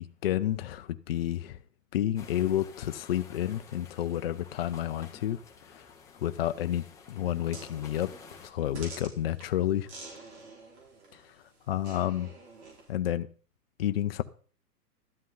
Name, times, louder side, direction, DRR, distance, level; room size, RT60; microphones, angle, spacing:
voice 1, 0.0-1.6 1.9-5.4 5.7-5.9 6.2-8.1 8.4-9.9 11.1-11.4 11.7-12.3 12.9-13.3 13.8-14.2, left 12 dB, 40° left, 0.5 m, -30 dB
sound 1, 2.2-8.5, left 5 dB, 5° left, 0.7 m, -52 dB
sound 2, 7.5-12.9, right 3 dB, 40° right, 4.8 m, -48 dB
12.5 x 11.0 x 3.8 m
hypercardioid pair, 150°, 49 cm